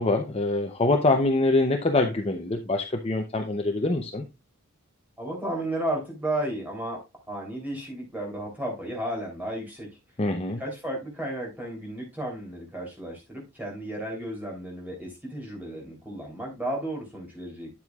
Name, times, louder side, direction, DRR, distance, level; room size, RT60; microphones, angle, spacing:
voice 1, 0.0-4.2 10.2-10.6, left 2 dB, 25° left, 0.6 m, -24 dB
voice 2, 5.2-10.0 10.6-17.8, right 1 dB, 5° right, 3.2 m, -33 dB
9.6 x 7.6 x 2.4 m
head